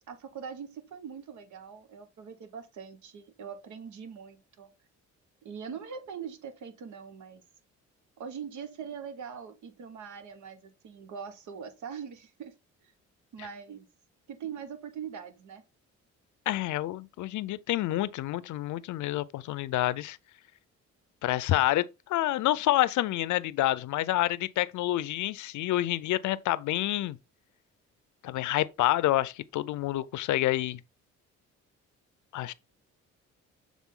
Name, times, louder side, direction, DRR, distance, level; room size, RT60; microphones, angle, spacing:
voice 1, 0.1-4.7 5.4-7.4 8.2-12.5 12.8-12.9 13.3-13.9 14.3-15.6, right 7 dB, 75° right, 1.3 m, -42 dB
voice 2, 16.5-20.2 21.2-27.2 28.2-30.8 32.3-32.5, left 15 dB, 75° left, 0.5 m, -28 dB
7.3 x 3.6 x 3.7 m
cardioid pair, 90°, 30 cm